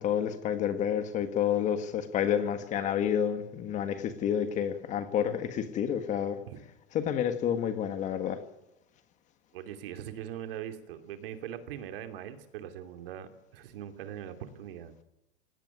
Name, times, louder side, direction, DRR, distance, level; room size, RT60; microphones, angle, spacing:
voice 1, 0.0-6.4 6.9-8.4, left 9 dB, 25° left, 1.5 m, -29 dB
voice 2, 9.5-14.9, right 10 dB, 60° right, 2.9 m, -41 dB
19.0 x 17.5 x 9.5 m
supercardioid pair, 170°, 32 cm